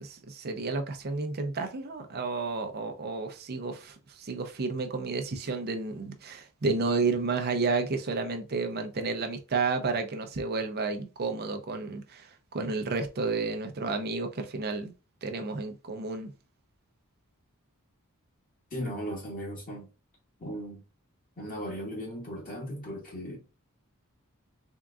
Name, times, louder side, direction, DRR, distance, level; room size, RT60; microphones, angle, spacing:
voice 1, 0.0-14.9 15.2-16.3, right 4 dB, 45° right, 0.6 m, -31 dB
voice 2, 18.7-19.9 20.4-20.8 21.4-23.4, equal, 40° left, 1.9 m, -37 dB
3.7 x 3.6 x 2.3 m
head